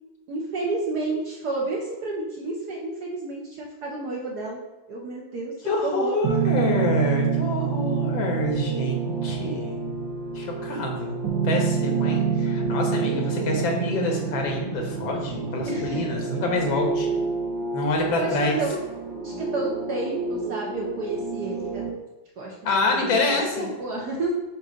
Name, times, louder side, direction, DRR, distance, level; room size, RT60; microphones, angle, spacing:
voice 1, 0.3-4.6 4.9-6.2 6.7-6.9 13.0-13.5 15.6-16.0 18.1-18.8 19.2-21.8 22.4-24.3, right 2 dB, 60° right, -3 dB, 1.4 m, -31 dB
voice 2, 5.7-9.8 10.4-17.1 17.7-18.6 22.6-23.7, left 2 dB, 85° left, 2 dB, 2.0 m, -26 dB
sound 1, 6.2-21.9, right 5 dB, 80° right, 1.8 m, -28 dB
8.0 x 2.8 x 5.0 m, 1.1 s
omnidirectional pair, 2.0 m